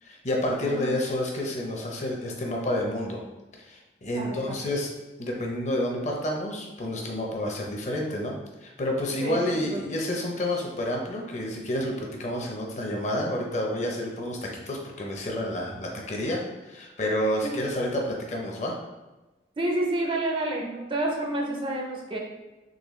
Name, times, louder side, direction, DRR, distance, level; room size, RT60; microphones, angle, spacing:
voice 1, 0.0-3.2 3.6-4.9 5.2-8.4 8.6-18.8, left 1 dB, 40° left, 0 dB, 0.6 m, -29 dB
voice 2, 0.6-0.9 4.1-4.6 9.2-9.8 17.4-17.6 19.6-22.2, right 2 dB, 30° right, 0 dB, 0.5 m, -29 dB
3.9 x 3.1 x 3.1 m, 1.1 s
head